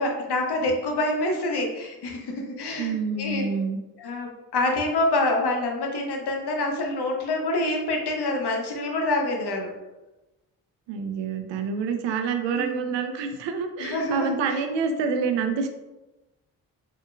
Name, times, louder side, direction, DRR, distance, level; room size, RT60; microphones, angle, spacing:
voice 1, 0.0-3.5 4.0-9.7 12.5-12.9 13.8-14.6, left 2 dB, 60° left, 2 dB, 1.0 m, -26 dB
voice 2, 2.8-3.8 10.9-15.7, right 5 dB, 75° right, 6 dB, 0.6 m, -27 dB
4.4 x 3.5 x 2.3 m, 1.0 s
hypercardioid pair, 40°, 44 cm